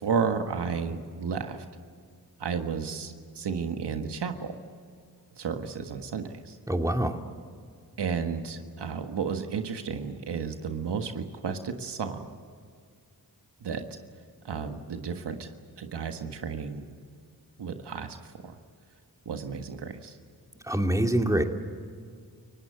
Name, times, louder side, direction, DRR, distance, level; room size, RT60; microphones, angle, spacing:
voice 1, 0.0-1.6 2.4-4.5 5.4-6.6 8.0-12.3 13.6-13.9 14.4-15.5 15.8-16.8 17.6-18.2 18.4-18.5 19.2-20.1, right 6 dB, 85° right, 6 dB, 1.6 m, -32 dB
voice 2, 6.7-7.2 20.7-21.4, right 1 dB, 10° right, 4 dB, 2.6 m, -25 dB
29.5 x 17.0 x 7.9 m, 2.1 s
cardioid pair, 45°, 40 cm